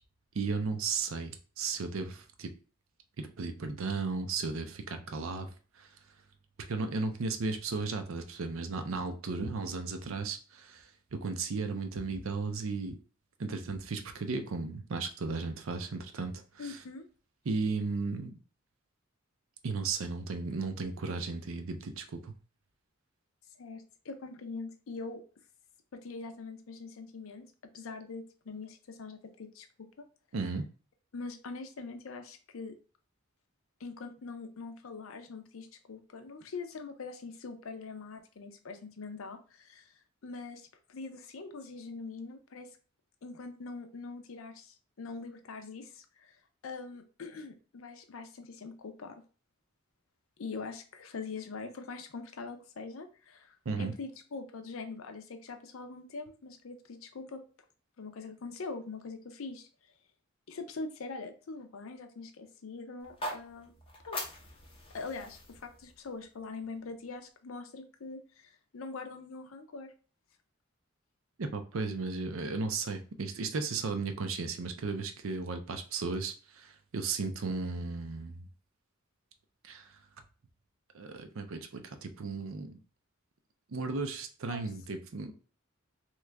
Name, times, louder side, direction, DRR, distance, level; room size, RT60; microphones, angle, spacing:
voice 1, 0.3-2.5 3.2-5.5 5.8-5.9 6.7-13.0 13.4-16.8 17.5-18.3 19.6-22.3 30.3-30.7 53.7-53.9 71.4-78.5 79.6-80.0 80.9-82.8 83.7-85.3, right 4 dB, 75° right, 7 dB, 0.5 m, -35 dB
voice 2, 16.6-17.1 23.6-25.2 25.9-27.5 27.7-30.0 31.1-32.7 33.8-39.9 40.2-42.8 43.2-46.4 46.6-49.2 50.4-57.4 58.0-59.7 60.5-63.7 64.0-64.2 64.9-69.9 84.5-84.6, left 4 dB, 75° left, 7 dB, 0.5 m, -43 dB
sound 1, 63.0-67.1, left 1 dB, 25° left, 0.7 m, -43 dB
3.0 x 2.4 x 3.3 m, 0.38 s
head